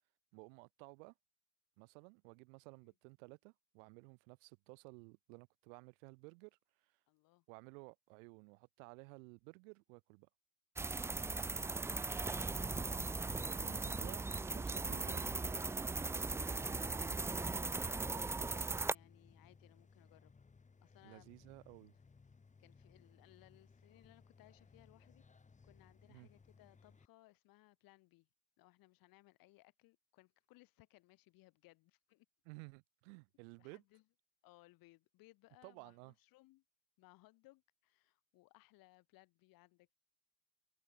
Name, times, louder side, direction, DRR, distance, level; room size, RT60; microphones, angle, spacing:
voice 1, 0.3-1.1 1.8-6.9 7.5-10.3 13.1-14.2 14.5-15.7 21.0-22.0 26.1-26.3 32.4-33.8 35.6-36.1, right 32 dB, 55° right, 3.5 m, -56 dB
voice 2, 7.1-7.4 16.5-20.3 20.8-21.4 22.6-25.2 25.6-28.3 28.6-32.3 33.6-34.0 34.4-36.6 37.0-39.9, left 20 dB, 50° left, 7.7 m, -66 dB
sound 1, 10.8-18.9, right 3 dB, 5° right, 0.5 m, -38 dB
sound 2, 13.2-27.1, left 4 dB, 15° left, 6.0 m, -64 dB
hypercardioid pair, 95°, 45 cm